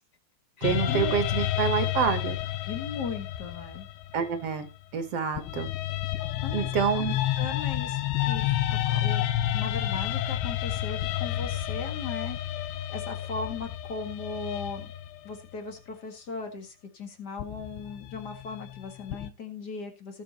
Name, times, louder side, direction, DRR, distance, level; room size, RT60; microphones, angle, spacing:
sound 1, 0.6-4.8 5.4-15.4 17.4-19.3, left 12 dB, 90° left, 2.8 m, -30 dB
voice 1, 0.6-2.4 4.1-4.7 4.9-5.7 6.5-7.2, right 7 dB, 65° right, 8 dB, 1.5 m, -27 dB
voice 2, 2.7-3.9 6.4-6.7 6.9-7.0 7.4-9.3 9.5-14.9 15.2-20.2, left 5 dB, 55° left, 4 dB, 1.1 m, -38 dB
18.5 x 6.5 x 2.9 m, 0.26 s
omnidirectional pair, 4.5 m